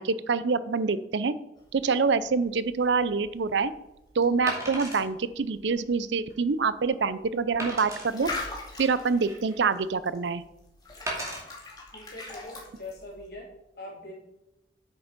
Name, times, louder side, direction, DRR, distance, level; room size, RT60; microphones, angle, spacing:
voice 1, 0.0-1.3 1.7-3.7 4.2-8.3 8.8-10.4, right 4 dB, 70° right, 15 dB, 0.5 m, -26 dB
sound 1, 1.6-13.3, left 3 dB, 20° left, 2.3 m, -43 dB
Wood, 2.9-3.0 4.5-5.1 5.7-5.8 6.3-6.4 7.6-8.1 8.9-9.6 11.1-11.4 12.2-12.4, right 1 dB, 15° right, 2.5 m, -35 dB
voice 2, 11.9-13.5 13.8-14.1, left 2 dB, 55° left, -3 dB, 3.7 m, -42 dB
8.7 x 6.9 x 5.2 m, 0.90 s
head